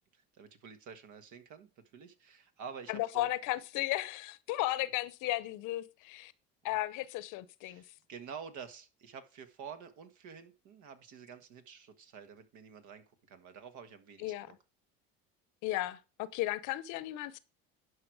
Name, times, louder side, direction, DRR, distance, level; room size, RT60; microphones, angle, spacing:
voice 1, 0.1-3.3 6.7-6.8 7.6-14.5, right 6 dB, 60° right, 1.6 m, -49 dB
voice 2, 2.9-6.3 6.6-7.8 14.2-14.5 15.6-17.4, left 16 dB, 65° left, 0.8 m, -35 dB
11.0 x 4.9 x 4.8 m
supercardioid pair, 80°, 33 cm